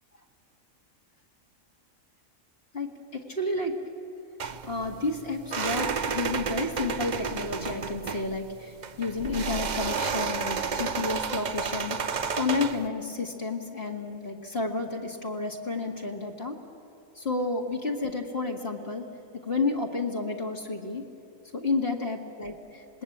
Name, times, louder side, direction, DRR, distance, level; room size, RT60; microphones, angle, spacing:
voice 1, 2.7-3.8 4.7-12.0 12.4-16.6 17.2-19.0 19.5-21.0 21.5-23.0, left 3 dB, 50° left, 1 dB, 2.1 m, -31 dB
sound 1, 4.4-12.9, right 5 dB, 40° right, 0.7 m, -31 dB
27.0 x 20.0 x 8.7 m, 2.7 s
omnidirectional pair, 1.4 m